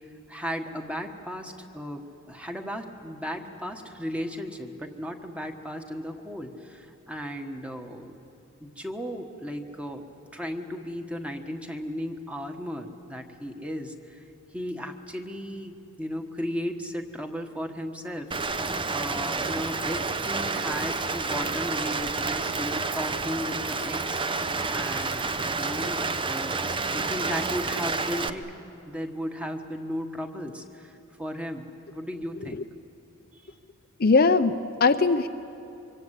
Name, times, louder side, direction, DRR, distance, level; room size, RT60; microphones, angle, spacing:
voice 1, 0.3-8.2 8.6-10.1 10.3-14.2 14.5-24.4 24.7-26.0 26.3-28.5 28.8-32.6 33.3-33.4, equal, 5° right, 4 dB, 1.5 m, -35 dB
Rain, 18.3-28.3, right 3 dB, 25° right, 0.8 m, -29 dB
voice 2, 34.0-35.3, left 4 dB, 45° left, 8 dB, 0.7 m, -20 dB
25.0 x 24.5 x 8.2 m, 2.9 s
head